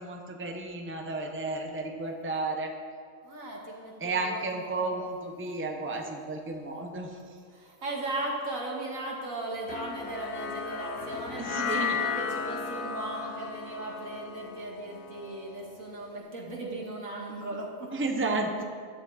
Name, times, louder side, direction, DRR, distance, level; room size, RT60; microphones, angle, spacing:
voice 1, 0.0-2.7 4.0-7.2 11.4-12.0 17.9-18.6, right 2 dB, 10° right, 3 dB, 0.8 m, -32 dB
voice 2, 3.2-4.9 7.5-17.9, right 2 dB, 90° right, -2 dB, 2.4 m, -37 dB
sound 1, 9.7-16.1, left 6 dB, 85° left, 1.2 m, -35 dB
13.0 x 10.0 x 4.2 m, 2.2 s
omnidirectional pair, 1.4 m